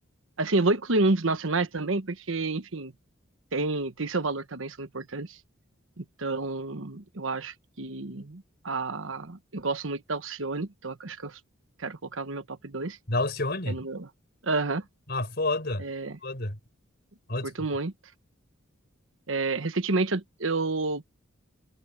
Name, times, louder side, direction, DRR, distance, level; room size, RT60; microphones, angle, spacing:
voice 1, 0.4-2.9 3.5-5.4 6.0-11.4 11.8-13.0 13.7-14.1 14.4-14.8 15.8-16.2 17.4-17.9 19.3-21.0, right 3 dB, 70° right, 1.2 m, -29 dB
voice 2, 13.1-13.8 15.1-15.8 16.2-16.6 17.3-17.5, left 2 dB, 50° left, 4.4 m, -29 dB
head